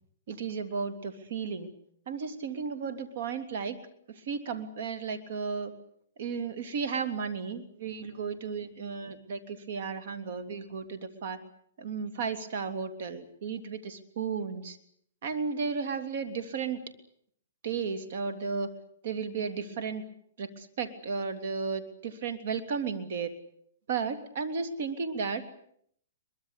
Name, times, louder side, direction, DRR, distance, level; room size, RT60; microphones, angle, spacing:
voice 1, 0.3-1.7 2.1-3.8 4.1-5.7 6.2-11.4 11.8-14.8 15.2-16.8 17.6-18.7 19.0-20.0 20.4-23.3 23.9-25.4, right 5 dB, 60° right, 12 dB, 3.2 m, -34 dB
23.0 x 22.5 x 8.4 m, 0.68 s
hypercardioid pair, 140°, 0 cm